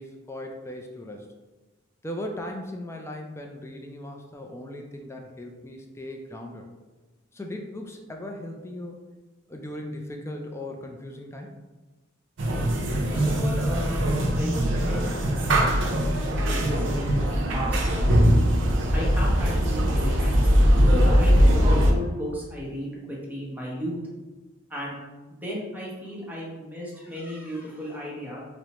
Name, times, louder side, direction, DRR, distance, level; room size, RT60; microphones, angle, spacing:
voice 1, 0.0-1.3 2.0-6.7 7.3-9.1 9.5-11.5 18.7-19.0, left 1 dB, 15° left, 2 dB, 0.3 m, -38 dB
sound 1, 12.4-21.9, equal, 65° right, 0.5 m, -21 dB
voice 2, 13.1-14.0 14.4-16.0 16.5-18.2 18.9-20.4 21.0-24.0 24.7-25.0 25.3-28.4, equal, 10° right, -5 dB, 0.8 m, -35 dB
4.8 x 2.1 x 2.9 m, 1.2 s
head